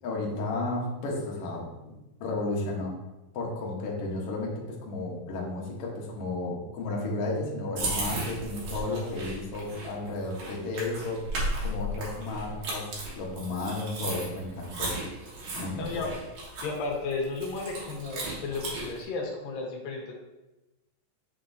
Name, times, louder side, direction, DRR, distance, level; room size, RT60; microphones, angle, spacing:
voice 1, 0.0-1.9 2.2-3.0 3.3-11.3 11.6-12.9 13.1-14.9 15.5-16.0, left 2 dB, 60° left, -2 dB, 1.7 m, -33 dB
sound 1, 7.8-19.0, right 1 dB, 65° right, 2.9 m, -35 dB
voice 2, 15.7-16.1 16.6-20.1, left 4 dB, 90° left, 0 dB, 3.0 m, -33 dB
6.8 x 6.6 x 2.7 m, 1.0 s
omnidirectional pair, 3.9 m